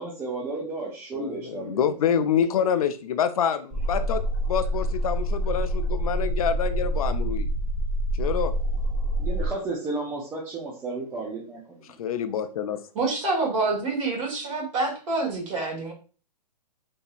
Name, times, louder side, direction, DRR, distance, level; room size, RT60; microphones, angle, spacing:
voice 1, 0.0-1.8 9.2-11.8, right 3 dB, 10° right, 0.4 m, -33 dB
voice 2, 1.1-4.2 4.5-7.5 8.1-8.5 12.0-12.8, left 8 dB, 60° left, 0.4 m, -26 dB
sound 1, 3.7-9.5, right 1 dB, 30° right, 0.9 m, -26 dB
voice 3, 12.9-15.9, right 3 dB, 50° right, 1.7 m, -27 dB
3.8 x 2.7 x 2.4 m
hypercardioid pair, 140°, 21 cm